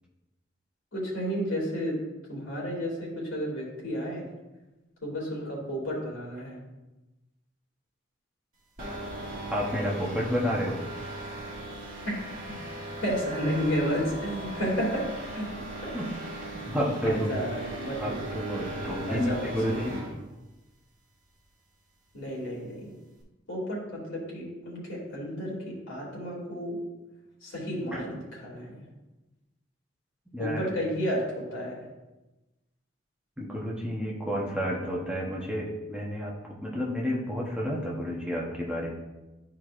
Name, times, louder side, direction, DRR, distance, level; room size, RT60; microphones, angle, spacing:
voice 1, 0.9-2.0 2.3-4.2 5.0-6.6 13.0-15.0 15.3-15.4 17.0-18.2 19.1-19.9 22.1-22.9 23.5-26.8 27.4-28.7 30.4-31.7, equal, 70° left, -3 dB, 2.5 m, -32 dB
sound 1, 8.8-20.2, right 1 dB, 40° right, 1.9 m, -38 dB
voice 2, 9.5-10.8 15.9-16.1 16.5-17.3 18.0-19.9 27.9-28.2 30.3-30.6 33.4-36.3 36.6-38.9, equal, 5° right, -4 dB, 0.9 m, -30 dB
12.0 x 4.7 x 2.5 m, 1.1 s
head